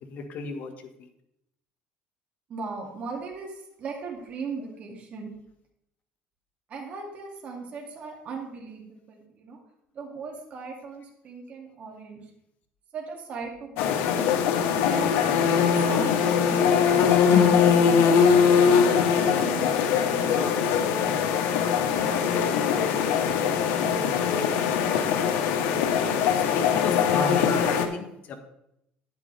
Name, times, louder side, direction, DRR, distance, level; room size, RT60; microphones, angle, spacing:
voice 1, 0.0-0.7 17.3-17.5 26.5-28.4, left 4 dB, 50° left, 5 dB, 1.5 m, -30 dB
voice 2, 2.5-5.3 6.7-9.6 9.9-12.2 12.9-14.3 14.8-17.7 18.1-18.3 18.6-20.6, right 4 dB, 40° right, -1 dB, 2.4 m, -38 dB
sound 1, 13.8-27.9, left 7 dB, 85° left, 1.2 m, -22 dB
10.0 x 9.7 x 3.4 m, 0.80 s
cardioid pair, 140°, 4 cm